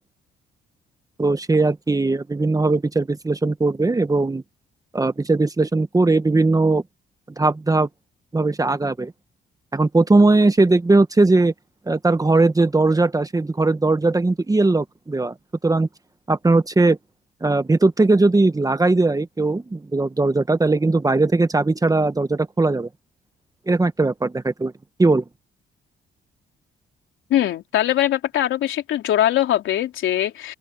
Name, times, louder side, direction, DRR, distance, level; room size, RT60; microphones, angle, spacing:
voice 1, 1.2-4.4 4.9-6.8 7.4-7.9 8.3-9.1 9.7-11.5 11.9-15.3 15.6-15.9 16.3-17.0 17.4-22.9 23.7-24.7 25.0-25.2, right 3 dB, 15° right, 1.3 m, -19 dB
voice 2, 27.3-30.5, left 12 dB, 80° left, 3.6 m, -21 dB
open air
cardioid pair, 90°, 20 cm